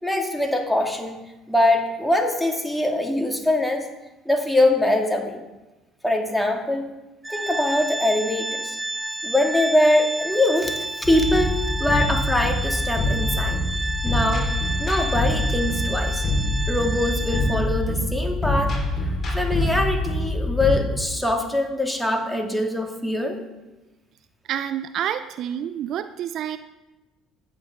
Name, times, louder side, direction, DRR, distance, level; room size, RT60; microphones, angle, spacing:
voice 1, 0.0-1.2 1.5-3.8 4.3-5.4 6.0-6.9 7.3-8.8 9.2-13.6 14.0-14.5 14.8-16.2 16.7-18.8 19.3-23.4, left 1 dB, 5° left, 2 dB, 2.4 m, -23 dB
Organ, 7.2-17.9, right 2 dB, 10° right, 0.5 m, -31 dB
sound 1, 11.0-20.8, left 2 dB, 35° left, 4.6 m, -25 dB
voice 2, 24.5-26.6, right 10 dB, 60° right, 12 dB, 0.5 m, -28 dB
14.5 x 8.8 x 3.8 m, 1.1 s
hypercardioid pair, 60°, 0 cm